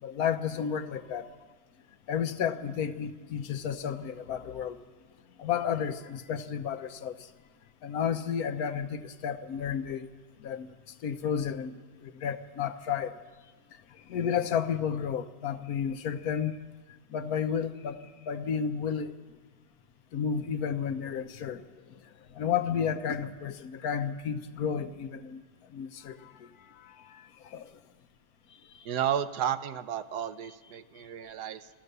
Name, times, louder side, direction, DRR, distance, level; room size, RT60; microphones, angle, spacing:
voice 1, 0.0-1.3 2.1-4.8 5.4-7.3 7.8-10.1 10.4-13.2 13.7-16.6 16.9-19.1 20.1-21.6 21.9-25.4 25.7-27.7 28.7-28.9, left 7 dB, 70° left, 10 dB, 1.3 m, -32 dB
voice 2, 28.8-31.7, right 9 dB, 85° right, 12 dB, 1.4 m, -32 dB
27.0 x 14.5 x 6.7 m, 1.4 s
omnidirectional pair, 1.7 m